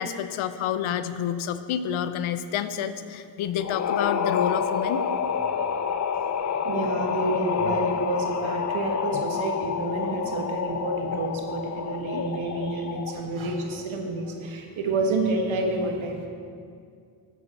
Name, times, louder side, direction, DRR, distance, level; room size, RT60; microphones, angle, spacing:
voice 1, 0.0-5.0, left 9 dB, 80° left, 12 dB, 0.6 m, -29 dB
sound 1, 3.6-13.3, left 7 dB, 35° left, 0.5 m, -28 dB
voice 2, 6.6-16.3, right 2 dB, 70° right, 2 dB, 1.5 m, -29 dB
8.1 x 7.7 x 5.4 m, 2.3 s
supercardioid pair, 55°, 48 cm